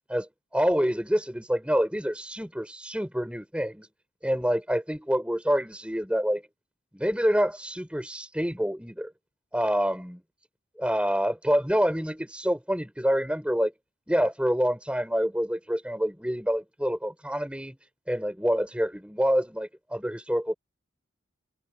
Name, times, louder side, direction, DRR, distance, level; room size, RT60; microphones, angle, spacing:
voice 1, 0.1-3.9 4.2-6.4 6.9-9.1 9.5-10.2 10.8-13.7 14.1-17.8 18.1-20.5, equal, 5° right, 6.9 m, -27 dB
head